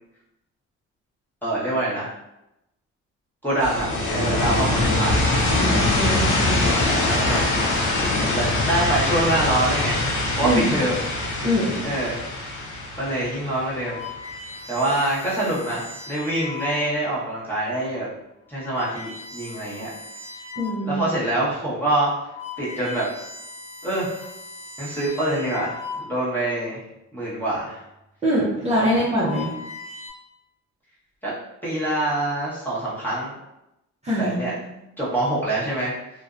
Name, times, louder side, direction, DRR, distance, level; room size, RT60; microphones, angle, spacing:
voice 1, 1.4-2.1 3.4-5.3 6.4-7.6 8.0-10.0 10.4-11.0 11.8-12.2 13.0-14.0 14.7-18.1 18.5-19.9 20.8-22.1 22.6-23.0 23.8-24.1 24.8-26.8 27.1-27.8 31.2-31.3 31.6-33.3 34.2-34.5 35.0-35.9, right 1 dB, 5° left, -8 dB, 1.1 m, -25 dB
sound 1, 3.6-14.3, left 2 dB, 85° left, 0.6 m, -23 dB
voice 2, 5.4-6.6 10.4-10.7 11.4-11.9 20.6-21.0 28.2-29.5 34.0-34.7, equal, 20° right, -9 dB, 0.6 m, -23 dB
sound 2, 13.6-17.0 17.7-17.9 18.5-20.9 21.4-21.5 22.0-26.5 27.5-27.9 28.8-30.1, left 4 dB, 45° left, 0.8 m, -39 dB
2.5 x 2.1 x 2.5 m, 0.89 s
cardioid pair, 90°, 30 cm